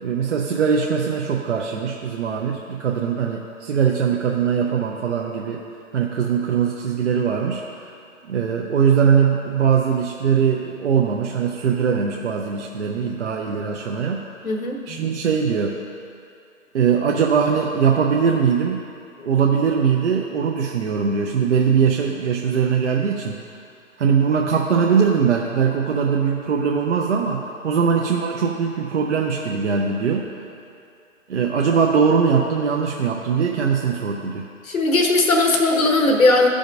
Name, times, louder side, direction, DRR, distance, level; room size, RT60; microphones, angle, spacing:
voice 1, 0.0-5.6 5.9-7.8 8.3-14.2 14.9-15.8 16.7-18.8 19.2-23.4 24.0-30.3 31.3-34.5, right 6 dB, 55° right, -1 dB, 0.7 m, -21 dB
voice 2, 14.4-15.0 19.2-19.4 34.6-36.5, left 2 dB, 85° left, 2 dB, 1.1 m, -18 dB
15.0 x 5.0 x 2.6 m, 2.5 s
hypercardioid pair, 140°, 41 cm